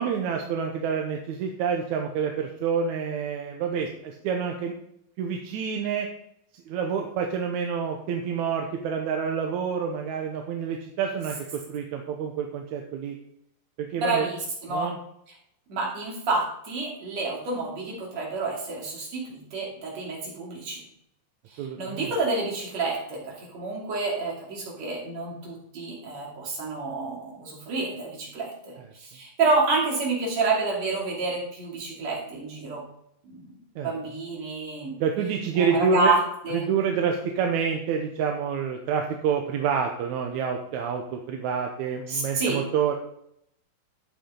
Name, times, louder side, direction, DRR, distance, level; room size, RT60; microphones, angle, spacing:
voice 1, 0.0-4.7 5.2-6.1 6.5-13.2 13.8-14.3 14.7-15.0 21.6-22.1 33.8-33.9 35.0-36.1 36.5-43.0, right 6 dB, 70° right, 3 dB, 2.1 m, -28 dB
voice 2, 14.0-14.9 15.7-20.8 21.5-32.8 33.2-33.6 33.8-35.0 35.6-36.2 36.4-36.6 42.1-42.6, right 3 dB, 55° right, -3 dB, 4.0 m, -29 dB
11.5 x 8.4 x 3.8 m, 0.74 s
omnidirectional pair, 3.7 m